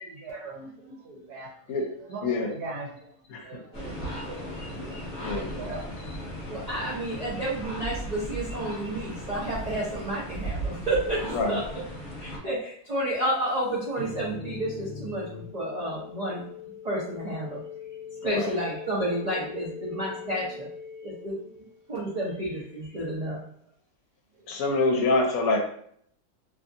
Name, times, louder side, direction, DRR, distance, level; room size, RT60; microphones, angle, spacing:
voice 1, 0.0-5.9 6.2-6.4 24.4-25.0, right 3 dB, 80° right, -3 dB, 1.2 m, -42 dB
sound 1, 3.7-12.4, right 1 dB, 25° left, 1.1 m, -36 dB
voice 2, 6.5-11.2 11.5-11.8 12.2-17.6 18.2-20.7 21.0-21.4 21.9-23.4, right 1 dB, 60° right, -6 dB, 0.4 m, -31 dB
sound 2, 14.0-21.9, left 6 dB, 40° left, 0.8 m, -41 dB
voice 3, 18.2-18.6 24.5-25.6, left 2 dB, 70° left, 2 dB, 1.0 m, -25 dB
2.8 x 2.5 x 2.5 m, 0.66 s
omnidirectional pair, 1.6 m